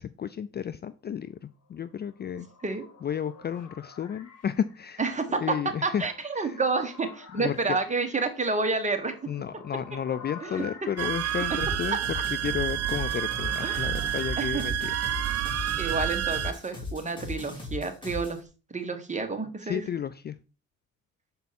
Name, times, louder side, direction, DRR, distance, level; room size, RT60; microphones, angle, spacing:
voice 1, 0.0-2.5 3.0-5.0 5.4-6.0 6.4-6.6 7.3-7.8 9.3-12.0 12.4-15.0 19.6-20.4, left 8 dB, 35° left, 13 dB, 0.4 m, -32 dB
sound 1, 1.9-15.3, left 5 dB, 55° left, 1.7 m, -49 dB
voice 2, 5.0-5.6 5.8-9.1 10.4-10.6 13.6-13.9 14.4-15.1 15.7-18.4 18.7-19.8, right 3 dB, 25° right, 7 dB, 1.4 m, -29 dB
sound 2, 11.0-16.5, right 12 dB, 55° right, 0.7 m, -29 dB
sound 3, 11.6-18.4, left 3 dB, 15° left, 3.3 m, -38 dB
6.8 x 4.7 x 4.1 m, 0.33 s
cardioid pair, 90°, 30 cm